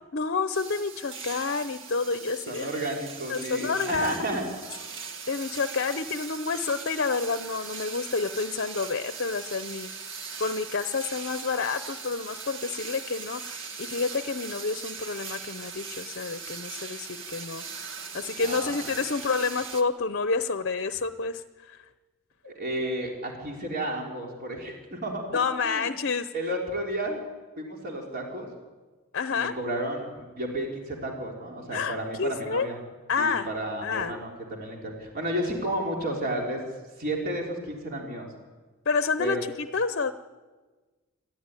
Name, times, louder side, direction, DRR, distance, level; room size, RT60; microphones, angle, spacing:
voice 1, 0.1-2.7 3.3-4.1 5.3-9.9 10.4-17.9 18.1-21.8 25.3-26.3 29.1-29.5 31.7-32.7 33.1-33.5 33.8-34.1 38.9-40.1, left 4 dB, 50° left, 11 dB, 0.7 m, -29 dB
sound 1, 0.5-19.8, right 5 dB, 60° right, 1.9 m, -40 dB
voice 2, 2.5-4.4 18.4-18.8 22.4-25.3 25.6-25.9 26.3-27.2 27.6-28.5 29.3-32.8 33.2-36.6 37.0-38.3 39.2-39.4, right 1 dB, 45° right, -1 dB, 3.9 m, -32 dB
27.5 x 14.0 x 9.9 m, 1.3 s
head